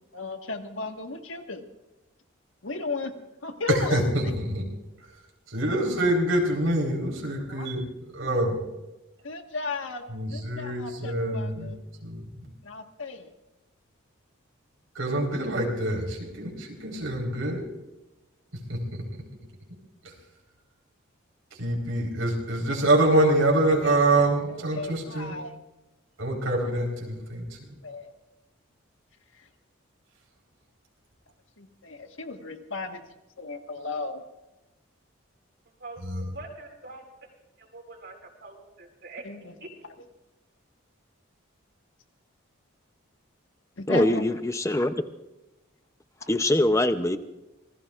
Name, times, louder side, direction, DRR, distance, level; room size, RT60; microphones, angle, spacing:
voice 1, 0.1-1.6 2.6-3.1 3.4-4.1 7.5-7.7 8.3-8.4 9.2-10.0 10.3-11.8 12.6-13.3 23.8-25.6 27.8-28.1 29.3-29.5 31.6-33.0 33.4-34.3 39.2-39.5 43.8-44.2, left 3 dB, 75° left, 5 dB, 1.6 m, -35 dB
voice 2, 3.7-4.6 5.5-7.8 8.1-8.6 10.1-11.8 12.0-12.5 14.9-17.6 18.7-19.0 21.6-25.3 26.2-27.4 36.0-36.2, right 1 dB, 85° right, -1 dB, 4.3 m, -25 dB
voice 3, 36.3-39.7, right 3 dB, 55° right, 2 dB, 4.2 m, -44 dB
voice 4, 43.9-44.9 46.3-47.2, left 1 dB, 15° left, 10 dB, 0.7 m, -23 dB
27.0 x 19.5 x 2.5 m, 1.0 s
head